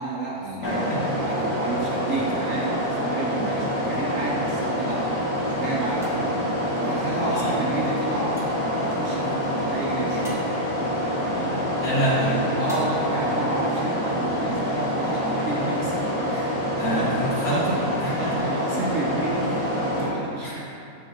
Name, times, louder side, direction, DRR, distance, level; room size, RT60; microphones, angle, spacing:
voice 1, 0.0-5.1 5.4-6.4 6.7-10.4 11.3-11.7 12.5-17.8 18.2-20.6, right 2 dB, 55° right, -3 dB, 1.1 m, -31 dB
voice 2, 0.6-1.0 7.3-7.5 11.8-12.4 16.8-17.6 18.0-18.1 20.4-20.6, right 1 dB, 55° left, -8 dB, 2.2 m, -26 dB
sound 1, 0.6-20.1, equal, 20° left, 1.6 m, -26 dB
sound 2, 3.9-4.0 6.0-6.5 8.4-8.7 10.2-10.6 12.7-13.3, left 1 dB, 5° right, 0.5 m, -39 dB
7.1 x 6.0 x 3.9 m, 2.6 s
omnidirectional pair, 1.8 m